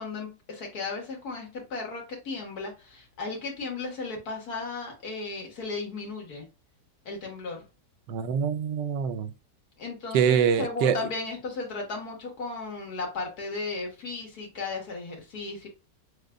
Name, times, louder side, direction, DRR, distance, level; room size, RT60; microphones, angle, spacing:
voice 1, 0.0-6.5 7.1-7.7 9.8-15.7, left 3 dB, 65° left, 1.8 m, -35 dB
voice 2, 8.1-9.3 10.1-11.0, right 7 dB, 85° right, 1.2 m, -24 dB
6.3 x 2.2 x 2.3 m
omnidirectional pair, 1.8 m